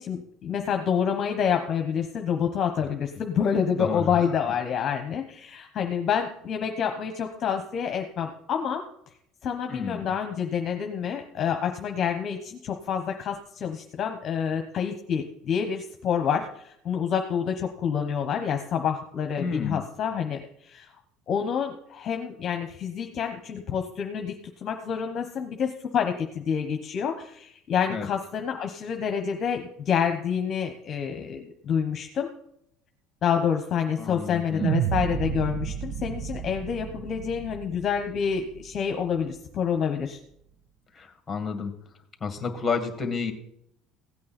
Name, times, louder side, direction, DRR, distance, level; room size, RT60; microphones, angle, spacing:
voice 1, 0.0-8.8 9.4-20.9 21.3-24.3 24.6-32.3 33.2-40.2, left 7 dB, 40° left, 5 dB, 1.1 m, -28 dB
voice 2, 9.7-10.1 19.4-19.8 27.9-28.1 34.0-34.8 40.9-41.7 42.2-43.3, left 5 dB, 20° left, 6 dB, 2.2 m, -30 dB
sound 1, 34.6-38.9, right 8 dB, 65° right, 0.8 m, -31 dB
16.0 x 8.5 x 4.4 m, 0.73 s
supercardioid pair, 115°, 0 cm